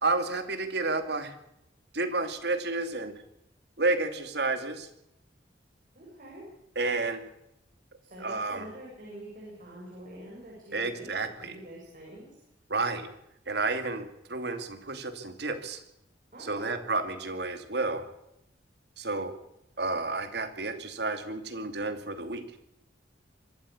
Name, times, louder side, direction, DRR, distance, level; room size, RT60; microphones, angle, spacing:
voice 1, 0.0-1.3 1.9-3.1 3.8-4.9 6.8-7.2 8.2-8.7 10.7-11.6 12.7-13.1 13.5-15.8 16.4-18.1 19.0-19.3 19.8-22.4, right 3 dB, 60° right, 8 dB, 2.6 m, -31 dB
voice 2, 5.9-6.4 8.0-12.4 16.3-16.7, right 1 dB, 45° right, -4 dB, 7.6 m, -45 dB
24.5 x 13.0 x 8.5 m, 0.81 s
head